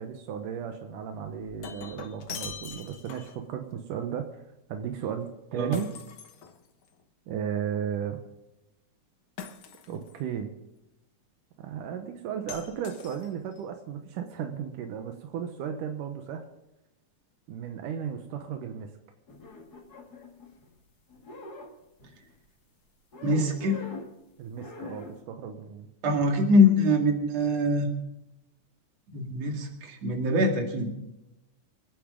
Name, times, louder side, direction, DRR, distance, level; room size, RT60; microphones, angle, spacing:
voice 1, 0.0-4.4 4.7-5.9 7.3-8.2 9.9-10.5 11.6-16.5 17.5-18.9 24.4-25.9, right 8 dB, 85° right, 5 dB, 2.7 m, -35 dB
Shatter, 1.2-3.5 5.7-7.0 9.4-10.2 12.5-13.6, left 7 dB, 55° left, 1.5 m, -43 dB
sound 1, 19.3-20.8 21.1-22.4 23.1-24.2 24.5-25.2, left 3 dB, 35° left, 2.0 m, -44 dB
voice 2, 23.2-23.8 26.0-27.9 29.1-30.9, left 1 dB, 55° right, 3 dB, 3.3 m, -23 dB
27.0 x 10.0 x 3.8 m, 0.94 s
omnidirectional pair, 3.6 m